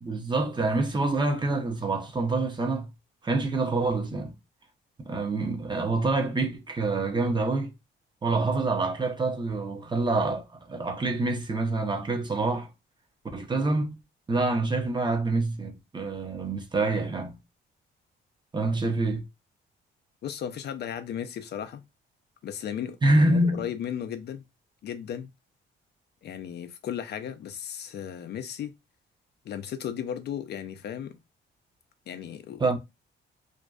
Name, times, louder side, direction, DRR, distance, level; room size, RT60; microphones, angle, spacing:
voice 1, 0.0-2.9 3.2-4.3 5.0-7.7 8.2-12.7 13.3-14.0 14.3-17.4 18.5-19.2 23.0-23.7 32.6-32.8, right 2 dB, 25° right, 0.6 m, -26 dB
voice 2, 20.2-21.8 22.4-24.4 24.8-25.3 26.2-28.7 29.5-31.2 32.1-32.6, left 9 dB, 60° left, 0.4 m, -35 dB
2.5 x 2.1 x 2.3 m
cardioid pair, 90°, 20 cm